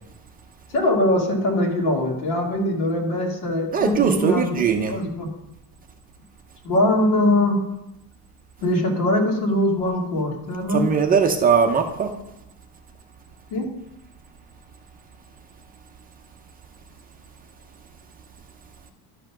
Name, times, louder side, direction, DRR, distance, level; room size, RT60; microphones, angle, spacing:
voice 1, 0.7-4.6 4.9-5.3 6.6-7.6 8.6-10.9 13.5-13.7, left 1 dB, 75° left, 0 dB, 2.8 m, -22 dB
voice 2, 3.7-5.0 10.7-12.1, right 6 dB, 20° right, 4 dB, 0.5 m, -20 dB
12.0 x 5.5 x 6.0 m, 0.89 s
cardioid pair, 170°, 39 cm